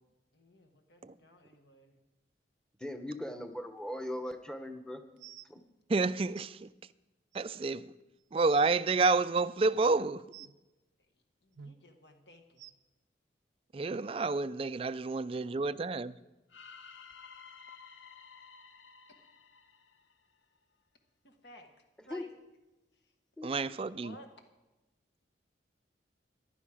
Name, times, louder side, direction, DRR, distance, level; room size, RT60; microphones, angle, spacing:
voice 1, 0.3-2.0 11.4-12.7 21.2-21.7 22.1-22.3 23.8-24.3, equal, 65° left, 1.3 m, -56 dB
voice 2, 2.8-5.0 5.5-5.6 22.1-22.2 23.4-23.5, left 1 dB, 5° left, 0.9 m, -39 dB
sound 1, 5.2-5.5 6.3-6.5 7.3-7.4 8.0-8.1 8.3-8.7 10.3-10.5 11.5-11.8 12.6-12.7 13.9-14.0 14.7-14.8 15.5-15.6, right 8 dB, 90° right, 0.6 m, -51 dB
voice 3, 5.9-6.7 7.3-7.9 8.3-10.2 13.7-16.2 23.4-24.1, right 3 dB, 30° right, 0.3 m, -29 dB
sound 2, 16.5-20.6, left 6 dB, 85° left, 1.0 m, -53 dB
15.5 x 11.0 x 4.9 m
head